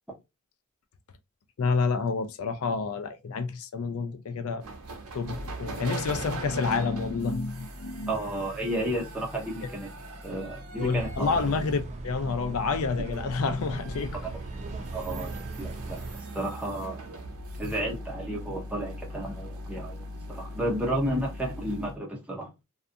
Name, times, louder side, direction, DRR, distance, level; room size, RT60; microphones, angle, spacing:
voice 1, 1.6-4.6 5.1-8.2 10.3-10.4 10.8-14.2, left 4 dB, 70° left, 0.4 m, -29 dB
sound 1, 4.6-22.0, right 1 dB, 80° right, 0.7 m, -40 dB
voice 2, 8.1-9.9 10.2-11.3 14.9-16.0 16.3-17.0 17.6-22.5, right 1 dB, 5° right, 0.8 m, -32 dB
sound 2, 10.8-16.2, right 2 dB, 30° right, 0.3 m, -38 dB
2.5 x 2.4 x 2.5 m
head